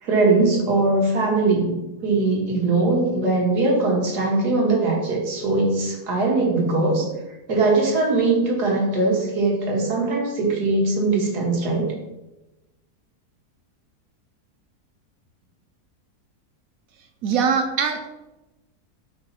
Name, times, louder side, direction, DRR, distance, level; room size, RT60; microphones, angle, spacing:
voice 1, 0.0-1.8 2.0-7.1 7.5-11.9, right 3 dB, 85° right, -1 dB, 2.1 m, -21 dB
voice 2, 17.2-18.1, right 6 dB, 70° right, 6 dB, 1.0 m, -22 dB
5.3 x 4.0 x 5.8 m, 1.0 s
omnidirectional pair, 1.7 m